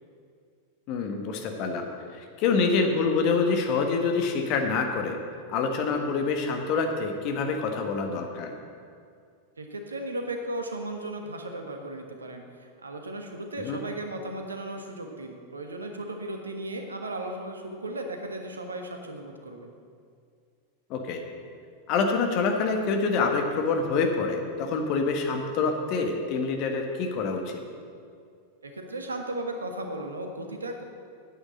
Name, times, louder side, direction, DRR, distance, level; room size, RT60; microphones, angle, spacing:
voice 1, 0.9-5.2 5.5-8.5 13.6-13.8 20.9-21.2 21.9-27.6, left 4 dB, 40° left, 4 dB, 1.5 m, -26 dB
voice 2, 9.6-19.7 28.6-30.8, right 1 dB, 75° right, 4 dB, 1.3 m, -36 dB
9.6 x 8.8 x 7.8 m, 2.3 s
figure-of-eight pair, 90°, 0 cm